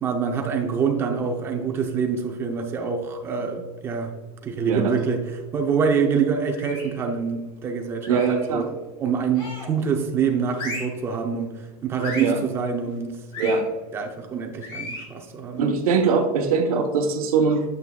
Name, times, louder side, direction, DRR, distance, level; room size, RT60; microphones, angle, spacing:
voice 1, 0.0-4.1 4.4-8.7 9.0-13.7 13.9-15.6, right 6 dB, 15° right, 3 dB, 0.5 m, -26 dB
voice 2, 4.7-5.0 8.1-8.6 12.2-12.4 13.4-13.6 15.6-17.6, right 5 dB, 85° right, 3 dB, 0.9 m, -21 dB
sound 1, 6.5-7.0 8.0-8.5 9.3-9.8 10.5-11.0 12.0-12.4 13.3-13.6 14.6-15.1, left 2 dB, 30° left, 2.0 m, -35 dB
7.8 x 5.8 x 2.2 m, 1.3 s
supercardioid pair, 175°, 18 cm